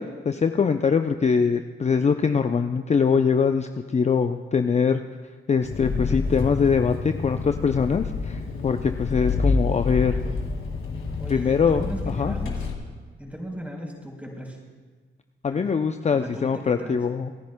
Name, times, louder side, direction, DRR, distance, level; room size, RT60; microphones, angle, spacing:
voice 1, 0.0-5.0 5.5-10.2 11.3-12.3 15.4-17.3, left 6 dB, 35° left, 8 dB, 0.5 m, -23 dB
Engine, 5.6-12.7, left 4 dB, 70° left, 2.2 m, -28 dB
voice 2, 11.2-12.6 13.2-14.6 15.5-15.7 16.1-17.0, equal, 5° right, -1 dB, 4.1 m, -37 dB
26.5 x 10.5 x 2.2 m, 1.5 s
cardioid pair, 55°, 21 cm